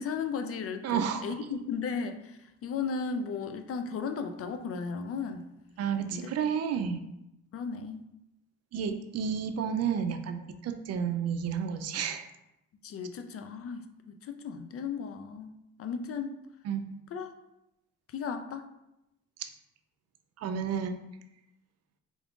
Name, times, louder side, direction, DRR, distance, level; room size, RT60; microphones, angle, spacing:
voice 1, 0.0-5.5 6.1-6.3 7.5-8.0 12.8-16.4 17.1-17.3 18.1-18.7, left 5 dB, 50° left, 7 dB, 0.4 m, -35 dB
voice 2, 0.8-1.4 5.8-7.0 8.7-12.3 16.6-16.9 19.4-19.5 20.4-21.0, right 7 dB, 55° right, 7 dB, 0.5 m, -31 dB
3.8 x 2.4 x 3.5 m, 0.88 s
cardioid pair, 90°, 30 cm